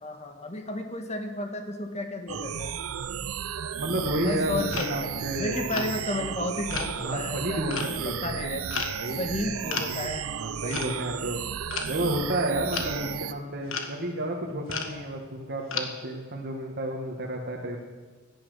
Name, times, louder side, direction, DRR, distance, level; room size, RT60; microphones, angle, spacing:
voice 1, 0.0-2.7 4.2-5.1 5.4-8.9 9.2-10.3 10.6-11.0, left 1 dB, 30° left, 5 dB, 1.7 m, -33 dB
sound 1, 2.3-13.3, right 8 dB, 90° right, 0.6 m, -34 dB
voice 2, 3.8-5.6 6.9-8.5 9.0-9.2 10.3-11.4 11.9-17.8, right 1 dB, 50° right, -1 dB, 1.6 m, -31 dB
sound 2, 4.7-5.1 5.7-5.9 6.7-6.9 7.7-8.0 8.7-9.0 9.7-9.9 10.7-11.0 11.7-12.0 12.7-12.9 13.7-13.9 14.7-14.9 15.7-15.9, left 5 dB, 65° left, 1.5 m, -32 dB
15.5 x 10.0 x 6.3 m, 1.5 s
head